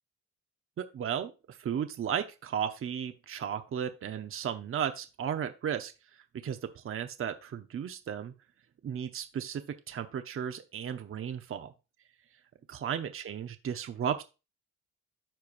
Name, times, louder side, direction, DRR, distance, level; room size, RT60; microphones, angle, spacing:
voice 1, 0.8-8.3 8.8-11.7 12.7-14.2, right 8 dB, 45° right, 8 dB, 0.8 m, -35 dB
13.5 x 4.7 x 2.5 m, 0.29 s
cardioid pair, 90°, 30 cm